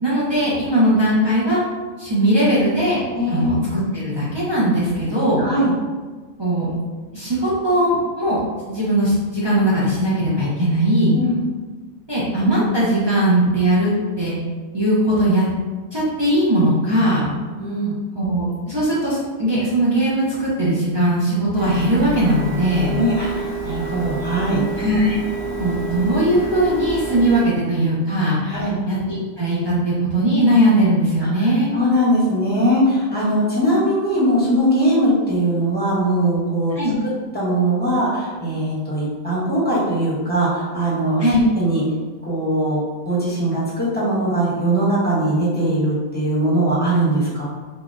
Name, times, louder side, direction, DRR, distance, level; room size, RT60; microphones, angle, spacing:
voice 1, 0.0-1.6 2.0-3.0 3.3-5.5 6.4-6.7 7.1-8.4 8.7-11.2 12.1-13.9 14.2-14.3 14.7-15.4 15.9-17.3 18.1-22.9 24.8-25.2 25.6-31.7 36.7-36.9 41.2-41.4, right 1 dB, 45° right, -9 dB, 0.3 m, -19 dB
voice 2, 3.1-3.6 5.4-5.7 11.1-11.4 17.6-17.9 22.8-24.6 28.5-28.8 31.4-36.7 37.3-41.2 41.5-41.8 42.3-47.4, right 1 dB, 10° left, -8 dB, 0.7 m, -20 dB
Printer, 21.6-27.4, right 3 dB, 90° right, 1.2 m, -29 dB
3.6 x 2.1 x 2.5 m, 1.4 s
omnidirectional pair, 1.4 m